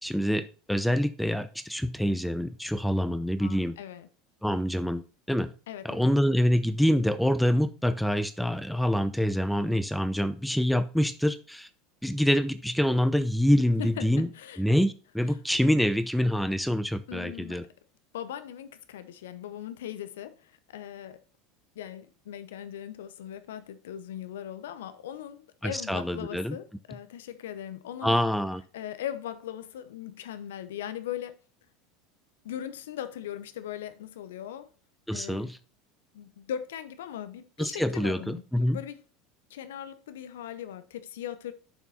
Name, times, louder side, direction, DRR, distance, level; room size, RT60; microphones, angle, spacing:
voice 1, 0.0-3.8 4.4-5.0 5.3-5.5 5.8-11.7 12.0-14.3 14.6-17.6 25.6-26.6 28.0-28.6 35.1-35.6 37.6-38.8, equal, ahead, 0.6 m, -26 dB
voice 2, 3.4-4.1 5.7-6.2 13.8-14.6 17.1-17.7 18.1-21.2 21.8-28.2 28.7-31.4 32.4-34.7 35.1-35.5 36.1-39.0 39.5-41.5, left 10 dB, 75° left, 0.7 m, -39 dB
7.2 x 6.0 x 4.1 m
hypercardioid pair, 80°, 0 cm